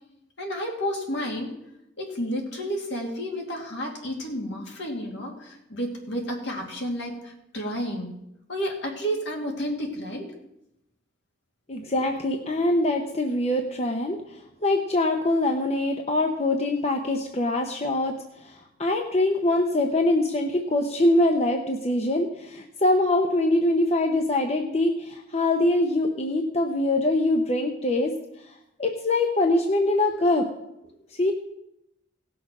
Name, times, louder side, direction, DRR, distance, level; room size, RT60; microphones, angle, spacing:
voice 1, 0.4-1.5 2.0-8.2 8.5-10.3, equal, 65° left, 1 dB, 2.4 m, -31 dB
voice 2, 11.7-28.2 28.5-30.5 31.1-31.3, left 2 dB, 35° left, 3 dB, 0.8 m, -24 dB
17.0 x 6.3 x 6.0 m, 0.85 s
head